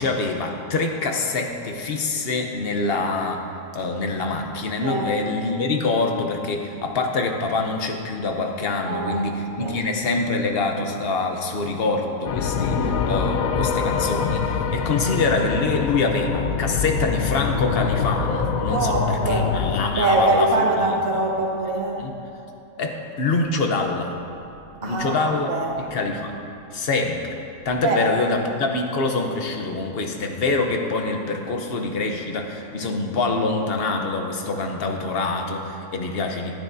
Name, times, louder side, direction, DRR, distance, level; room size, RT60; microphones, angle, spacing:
voice 1, 0.0-3.5 3.7-20.7 22.0-22.2 22.8-24.2 24.8-25.5 25.8-26.4 26.7-27.4 27.6-36.6, left 3 dB, 50° left, 3 dB, 0.9 m, -25 dB
voice 2, 8.8-9.2 9.6-9.8 18.7-19.5 20.0-22.0 24.8-25.7 27.8-28.0, right 2 dB, 80° right, -1 dB, 1.6 m, -23 dB
sound 1, 12.2-19.9, left 6 dB, 80° left, 1.0 m, -24 dB
12.0 x 10.5 x 2.7 m, 2.7 s
omnidirectional pair, 1.4 m